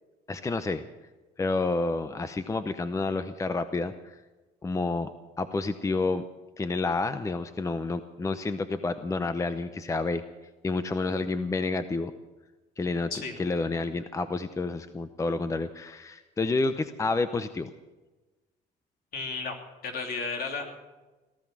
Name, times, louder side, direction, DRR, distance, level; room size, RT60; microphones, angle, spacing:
voice 1, 0.3-0.8 1.4-4.2 4.6-5.1 5.4-6.2 6.6-10.2 10.6-12.1 12.8-13.1 13.4-17.7, left 3 dB, 20° left, 11 dB, 0.7 m, -29 dB
voice 2, 19.1-19.5 19.8-20.8, left 4 dB, 60° left, 3 dB, 3.2 m, -33 dB
18.0 x 13.0 x 6.1 m, 1.2 s
cardioid pair, 110°, 17 cm